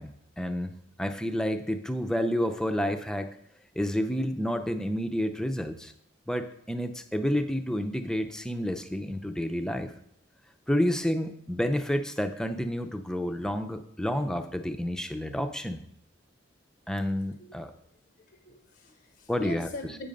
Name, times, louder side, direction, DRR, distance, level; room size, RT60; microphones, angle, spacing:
voice 1, 0.0-3.3 3.8-5.9 6.3-9.9 10.7-15.8 16.9-17.7 19.3-19.7, equal, 5° left, 7 dB, 0.5 m, -30 dB
voice 2, 17.1-17.6 18.2-20.1, left 1 dB, 55° left, 6 dB, 0.7 m, -41 dB
8.6 x 5.8 x 5.2 m, 0.72 s
head